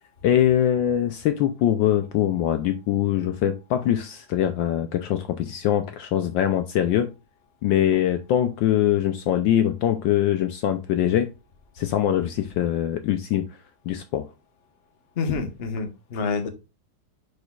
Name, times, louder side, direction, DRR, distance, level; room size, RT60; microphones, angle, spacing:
voice 1, 0.2-7.1 7.6-11.3 11.8-13.4 13.9-14.3, left 11 dB, 75° left, 8 dB, 1.2 m, -23 dB
voice 2, 15.1-16.5, left 4 dB, 40° left, 5 dB, 1.0 m, -27 dB
10.5 x 5.0 x 2.4 m, 0.28 s
omnidirectional pair, 2.3 m